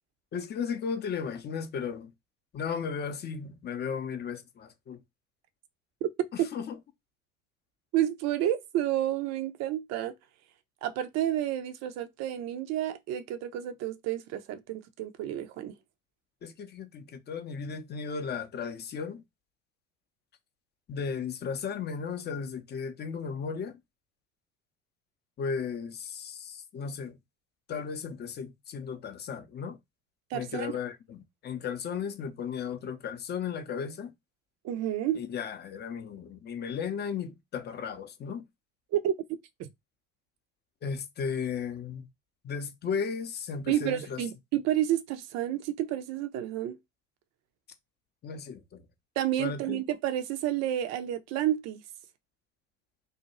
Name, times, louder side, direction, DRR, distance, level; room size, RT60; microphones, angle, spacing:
voice 1, 0.3-2.1 2.5-5.0 6.3-6.8 16.4-19.2 20.9-23.8 25.4-27.2 27.7-29.8 30.3-34.1 35.1-38.4 40.8-42.1 42.4-44.2 48.2-48.8 49.4-49.8, left 6 dB, 25° left, 0.6 m, -35 dB
voice 2, 7.9-10.1 10.8-15.7 30.3-30.7 34.6-35.2 38.9-39.7 43.7-46.8 49.2-51.8, right 12 dB, 45° right, 0.5 m, -30 dB
2.6 x 2.2 x 2.9 m
figure-of-eight pair, 65°, 39 cm